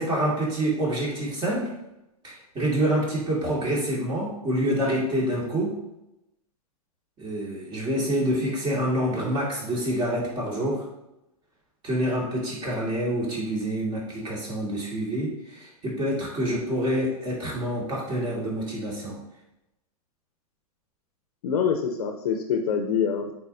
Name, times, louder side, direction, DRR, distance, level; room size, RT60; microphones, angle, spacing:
voice 1, 0.0-1.7 2.2-5.7 7.2-10.9 11.8-19.2, right 1 dB, 25° right, -4 dB, 2.2 m, -27 dB
voice 2, 21.4-23.3, left 7 dB, 75° left, 4 dB, 0.9 m, -25 dB
8.5 x 4.1 x 2.7 m, 0.89 s
hypercardioid pair, 135°, 20 cm